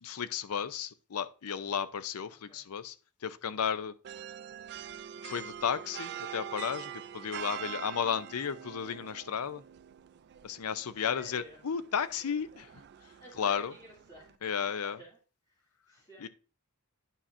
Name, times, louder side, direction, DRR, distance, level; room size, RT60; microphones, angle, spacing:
voice 1, 0.0-2.9 3.2-3.9 5.2-9.6 10.4-12.7 13.4-13.7 14.4-15.0 16.2-16.3, left 7 dB, 85° left, 0.5 m, -33 dB
voice 2, 2.3-2.6 3.5-3.7 10.9-11.6 13.2-15.2 15.5-15.6 15.9-16.3, right 2 dB, 20° left, 2.3 m, -53 dB
sound 1, 4.0-14.4, right 9 dB, 50° right, 0.3 m, -45 dB
9.9 x 5.7 x 2.6 m
head